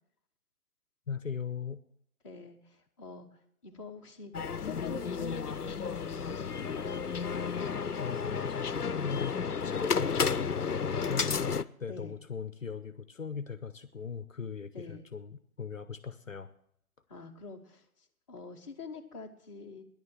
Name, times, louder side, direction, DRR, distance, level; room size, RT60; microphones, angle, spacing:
voice 1, 1.1-1.8 8.0-16.5, left 6 dB, 60° left, 12 dB, 0.9 m, -39 dB
voice 2, 2.2-4.3 4.6-6.9 11.9-12.2 14.7-15.0 17.1-19.8, left 4 dB, 20° left, -1 dB, 1.2 m, -46 dB
sound 1, 4.3-11.6, left 6 dB, 90° left, 0.7 m, -32 dB
10.5 x 9.5 x 8.9 m, 0.69 s
figure-of-eight pair, 145°, 44 cm